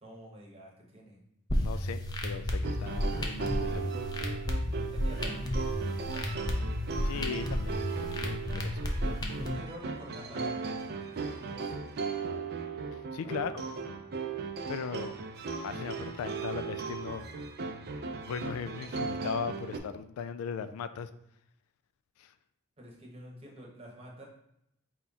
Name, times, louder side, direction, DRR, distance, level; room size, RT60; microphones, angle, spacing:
voice 1, 0.0-1.2 4.9-6.6 9.0-11.8 13.2-14.0 22.8-24.3, equal, 30° right, -2 dB, 0.9 m, -49 dB
voice 2, 1.5-3.9 7.1-8.9 12.9-13.5 14.7-15.1 15.6-17.3 18.3-21.1 22.2-22.3, left 6 dB, 90° left, 14 dB, 0.3 m, -38 dB
sound 1, 1.5-9.5, left 1 dB, 20° left, 0.4 m, -32 dB
sound 2, 2.6-19.8, right 5 dB, 50° right, 0.4 m, -37 dB
4.3 x 2.4 x 4.0 m, 0.78 s
head